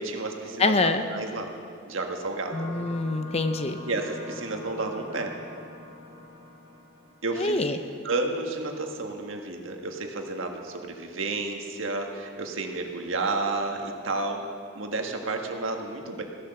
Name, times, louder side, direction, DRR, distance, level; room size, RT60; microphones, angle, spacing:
voice 1, 0.0-1.5 1.9-2.7 3.9-5.3 7.2-7.6 8.0-14.4 14.7-16.2, right 3 dB, 80° right, 3 dB, 1.6 m, -31 dB
voice 2, 0.6-1.1 2.5-3.8 7.3-7.8, left 3 dB, 30° left, 9 dB, 0.7 m, -25 dB
sound 1, 2.5-7.8, left 2 dB, 70° left, 4.7 m, -44 dB
16.0 x 10.5 x 6.9 m, 2.3 s
head